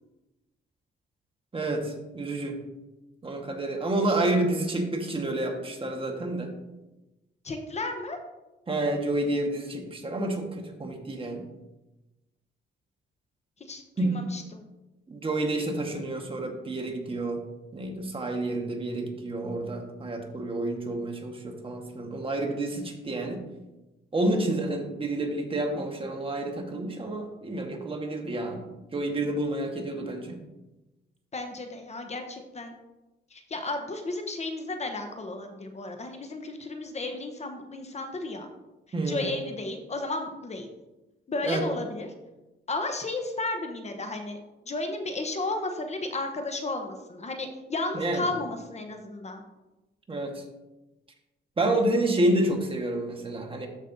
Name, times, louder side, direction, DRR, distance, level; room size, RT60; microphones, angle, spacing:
voice 1, 1.5-2.6 3.2-6.5 8.7-11.4 14.0-14.2 15.1-17.4 17.7-23.4 24.1-28.6 28.9-30.4 38.9-39.4 41.4-41.7 47.9-48.2 50.1-50.4 51.6-53.7, right 1 dB, 25° right, 2 dB, 1.5 m, -29 dB
voice 2, 7.4-8.2 13.7-14.6 24.2-24.3 31.3-32.7 33.3-38.5 39.0-40.7 41.3-42.1 42.7-44.4 44.6-49.4, left 2 dB, 35° left, 5 dB, 1.0 m, -33 dB
13.0 x 5.3 x 2.7 m, 1.0 s
cardioid pair, 90°, 20 cm